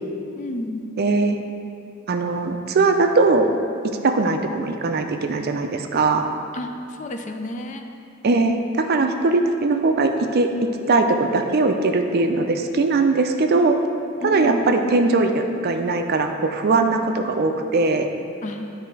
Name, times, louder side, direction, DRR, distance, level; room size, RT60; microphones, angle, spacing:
voice 1, 0.4-0.9 6.5-6.7 7.0-7.9 14.2-14.6 18.4-18.7, left 1 dB, 35° left, 5 dB, 0.4 m, -30 dB
voice 2, 1.0-1.4 2.1-3.5 4.0-6.3 8.2-10.5 10.9-13.8 14.2-18.1, right 3 dB, 45° right, 5 dB, 0.4 m, -20 dB
9.5 x 3.4 x 4.6 m, 2.6 s
head